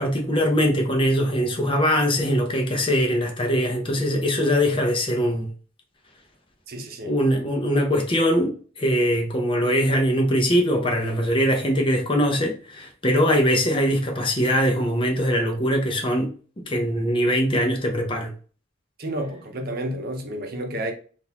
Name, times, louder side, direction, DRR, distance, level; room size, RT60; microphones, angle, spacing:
voice 1, 0.0-5.5 7.1-16.3 16.6-18.3, equal, 25° left, 0.6 m, -22 dB
voice 2, 6.7-7.1 19.0-20.9, right 1 dB, 50° right, 0.7 m, -30 dB
3.7 x 2.5 x 2.8 m
head